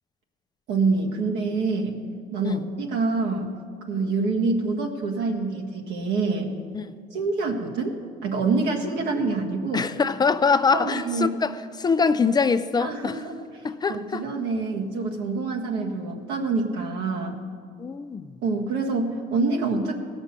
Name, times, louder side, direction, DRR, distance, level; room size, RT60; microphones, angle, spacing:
voice 1, 0.7-2.0 2.3-3.5 3.9-6.6 7.1-9.9 10.7-11.4 12.8-17.4 18.4-20.0, right 3 dB, 80° right, 1.7 m, -26 dB
voice 2, 9.7-13.2 13.6-14.2 17.8-18.3, left 5 dB, 25° left, 0.4 m, -24 dB
17.0 x 6.2 x 6.7 m
cardioid pair, 110°, 17 cm